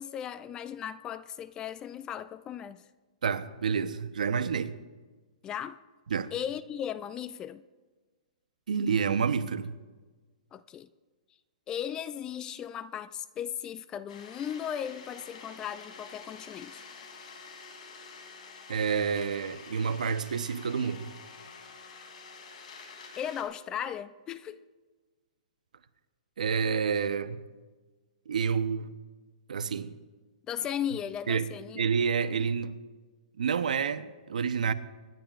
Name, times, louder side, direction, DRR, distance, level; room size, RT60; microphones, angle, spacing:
voice 1, 0.0-2.9 5.4-5.8 6.3-7.6 10.5-10.9 11.7-16.8 22.0-22.1 23.2-24.6 30.5-31.8, left 9 dB, 20° left, 0.3 m, -36 dB
voice 2, 3.2-4.7 6.1-6.3 8.7-9.8 18.7-21.1 26.4-27.4 28.3-28.9 29.5-29.9 31.3-31.5 31.7-32.8 33.4-34.7, right 6 dB, 80° right, 0.8 m, -29 dB
sound 1, 14.1-23.4, left 4 dB, 70° left, 2.9 m, -48 dB
26.0 x 10.5 x 2.5 m
hypercardioid pair, 150°, 4 cm